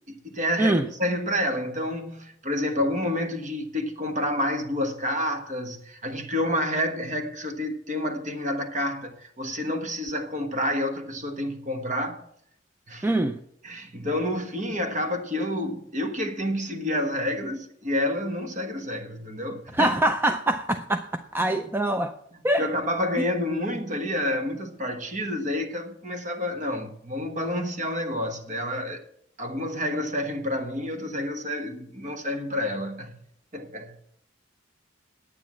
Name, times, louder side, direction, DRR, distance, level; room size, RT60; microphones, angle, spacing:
voice 1, 0.1-12.2 12.9-13.1 13.6-20.0 22.3-29.0 29.4-33.1 33.5-33.9, left 1 dB, 40° right, 1.4 m, -29 dB
voice 2, 13.0-13.4 19.7-22.1 22.4-22.7, right 1 dB, 10° right, 0.4 m, -24 dB
9.6 x 8.9 x 7.4 m
head